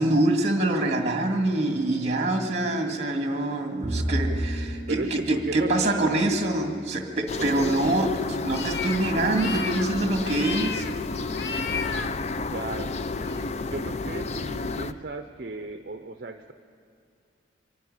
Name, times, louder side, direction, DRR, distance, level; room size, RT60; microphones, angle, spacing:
voice 1, 0.0-8.1 8.4-10.8, right 2 dB, 35° right, 4 dB, 2.0 m, -25 dB
Bowed string instrument, 3.8-7.3, right 1 dB, 5° left, 7.2 m, -32 dB
voice 2, 4.9-6.3 7.4-8.2 12.4-12.9 13.7-16.5, right 3 dB, 55° right, 7 dB, 0.7 m, -35 dB
sound 1, 7.3-14.9, left 3 dB, 35° left, 0.5 m, -31 dB
sound 2, 7.5-7.7 8.4-9.0 9.3-9.9 10.2-10.9 11.3-12.1 13.1-13.4, left 6 dB, 75° left, 0.8 m, -34 dB
24.0 x 12.0 x 9.9 m, 2.5 s
head